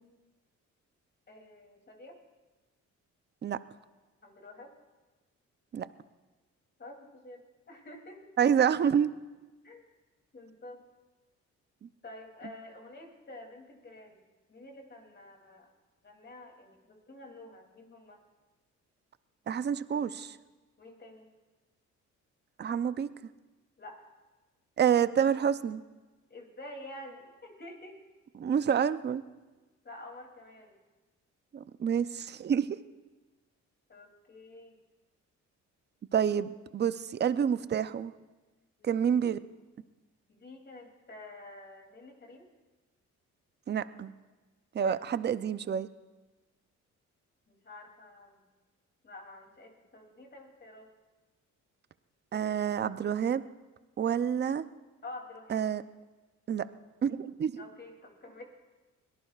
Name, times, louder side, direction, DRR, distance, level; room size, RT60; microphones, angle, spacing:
voice 1, 1.3-2.2 4.2-4.7 6.8-8.3 9.6-9.9 10.3-10.8 12.0-14.2 14.5-15.7 16.0-18.2 20.8-21.3 23.8-24.0 26.3-28.0 29.8-30.8 33.9-34.8 38.8-39.0 40.3-42.5 44.8-44.9 47.5-48.4 49.0-50.9 55.0-55.7 57.6-58.4, left 2 dB, 35° left, 1 dB, 2.9 m, -49 dB
voice 2, 8.4-9.1 11.8-11.9 19.5-20.4 22.6-23.1 24.8-25.8 28.4-29.2 31.5-32.8 36.1-38.1 38.8-39.4 43.7-44.1 44.7-45.9 52.3-53.4 54.0-54.6 55.5-55.8 56.5-56.7 57.0-57.6, right 8 dB, 35° right, 14 dB, 0.6 m, -28 dB
22.5 x 18.0 x 2.4 m, 1.2 s
cardioid pair, 90°, 30 cm